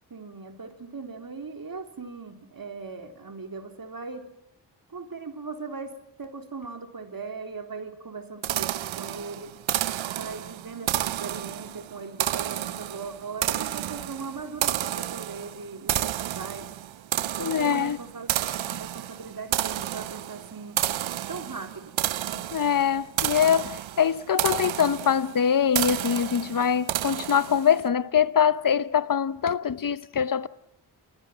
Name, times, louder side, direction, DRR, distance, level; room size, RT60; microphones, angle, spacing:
voice 1, 0.1-4.3 4.9-9.5 10.0-16.7 17.4-20.8 21.3-21.9, right 4 dB, 45° right, 3.7 m, -39 dB
sound 1, 8.4-27.8, right 13 dB, 75° right, 0.9 m, -31 dB
voice 2, 17.4-18.0 22.3-30.5, left 8 dB, 45° left, 1.1 m, -23 dB
28.5 x 20.5 x 7.4 m
supercardioid pair, 45°, 48 cm